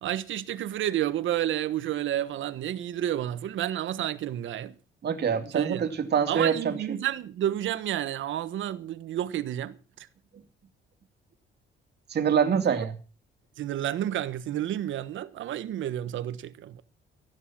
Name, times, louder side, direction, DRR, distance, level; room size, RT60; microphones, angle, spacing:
voice 1, 0.0-4.8 5.5-5.8 6.3-10.1 12.7-12.8 13.6-16.8, right 12 dB, 75° right, 1.3 m, -30 dB
voice 2, 5.0-6.8 12.1-12.9, right 7 dB, 55° right, 2.6 m, -25 dB
15.0 x 11.5 x 6.0 m
cardioid pair, 90°, 20 cm